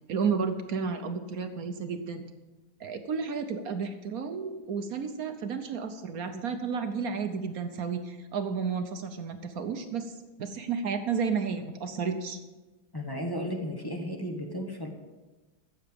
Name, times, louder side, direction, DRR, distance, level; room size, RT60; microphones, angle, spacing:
voice 1, 0.1-2.2 2.8-12.4, right 5 dB, 60° right, 7 dB, 1.0 m, -32 dB
voice 2, 12.9-14.9, equal, 15° left, 2 dB, 0.9 m, -34 dB
14.5 x 7.9 x 5.2 m, 1.2 s
omnidirectional pair, 2.2 m